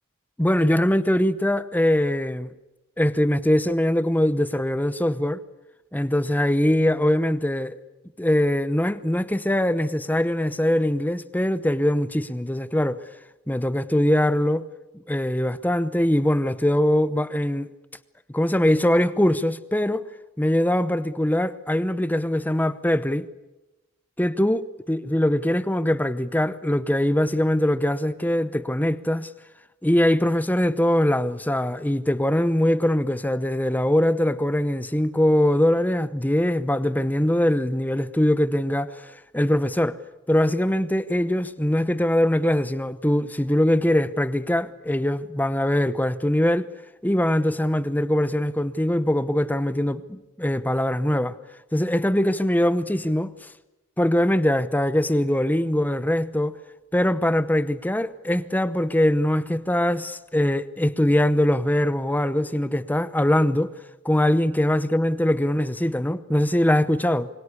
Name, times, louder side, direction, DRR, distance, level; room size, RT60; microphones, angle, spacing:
voice 1, 0.4-2.5 3.0-5.4 5.9-7.8 8.2-13.0 13.5-14.7 15.1-17.7 18.3-20.0 20.4-23.3 24.2-24.6 24.9-29.3 29.8-40.0 40.3-46.7 47.0-51.4 51.7-53.5 54.0-56.6 56.9-63.8 64.0-67.3, left 1 dB, 10° left, 0.8 m, -22 dB
27.5 x 24.0 x 8.4 m
head